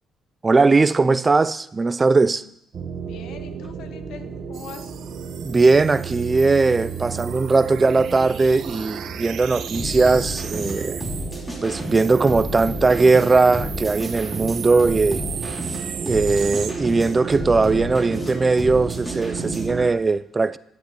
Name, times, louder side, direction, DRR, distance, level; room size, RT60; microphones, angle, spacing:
voice 1, 0.4-2.4 5.4-11.0 11.6-15.2 16.0-20.6, right 3 dB, 30° right, 0.3 m, -19 dB
sound 1, 2.7-19.9, right 5 dB, 55° right, 1.0 m, -33 dB
voice 2, 2.9-4.9, left 7 dB, 80° left, 0.7 m, -42 dB
sound 2, 4.5-11.4 11.8-16.7, right 8 dB, 80° right, 0.6 m, -37 dB
sound 3, 9.7-19.9, left 1 dB, 15° left, 2.6 m, -33 dB
9.5 x 8.9 x 2.9 m
cardioid pair, 90°, 0 cm